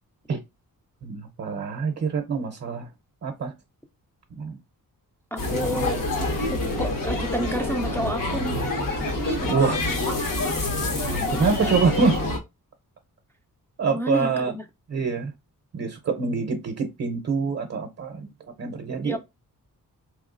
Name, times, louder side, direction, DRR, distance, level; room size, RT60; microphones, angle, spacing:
voice 1, 1.0-2.9 3.2-3.5 4.4-4.6 9.5-9.8 11.3-12.2 13.8-14.5 14.9-15.3 15.7-18.3 18.6-19.2, right 4 dB, 45° right, 0.6 m, -25 dB
voice 2, 5.3-6.0 6.5-8.6 9.4-9.7 13.9-14.7 19.0-19.2, equal, 5° left, 0.3 m, -30 dB
sound 1, 5.4-12.4, left 2 dB, 65° left, 1.0 m, -26 dB
3.5 x 3.0 x 2.5 m
wide cardioid pair, 105°, 35 cm